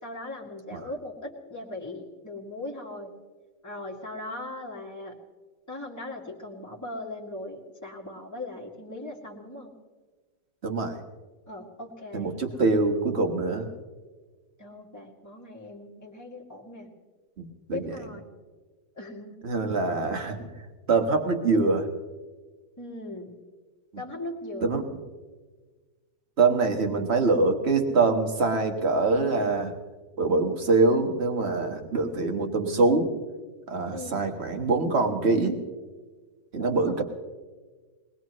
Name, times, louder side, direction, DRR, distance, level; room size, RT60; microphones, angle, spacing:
voice 1, 0.0-3.1 3.6-5.2 5.7-9.7 11.5-12.6 14.6-16.9 17.7-18.3 18.9-19.4 22.8-23.4 24.0-24.8 33.9-34.2 36.6-37.0, left 2 dB, 10° left, -2 dB, 2.0 m, -39 dB
voice 2, 10.6-11.0 12.1-13.7 17.4-17.8 19.4-20.5 20.9-21.9 24.6-24.8 26.4-29.7 30.2-33.1 33.7-35.6 36.5-37.0, right 3 dB, 40° right, 5 dB, 1.6 m, -24 dB
22.5 x 20.0 x 3.1 m, 1.4 s
omnidirectional pair, 1.9 m